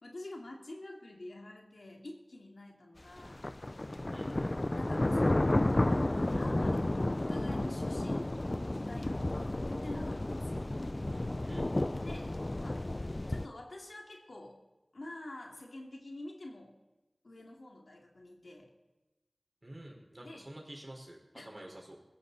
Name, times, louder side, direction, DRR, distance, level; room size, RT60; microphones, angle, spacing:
voice 1, 0.0-3.5 4.7-5.6 6.4-6.9 7.2-8.4 8.8-10.7 12.0-14.6 14.9-16.7 17.2-18.7 20.2-20.5 21.3-21.6, left 1 dB, 80° left, 1 dB, 2.6 m, -48 dB
sound 1, 3.2-13.5, left 1 dB, 40° left, 0.5 m, -32 dB
voice 2, 4.1-4.5 11.5-12.1 19.6-21.2 21.4-22.0, right 1 dB, 40° right, 0 dB, 4.6 m, -49 dB
21.5 x 14.5 x 4.1 m, 1.1 s
wide cardioid pair, 50°, 0 cm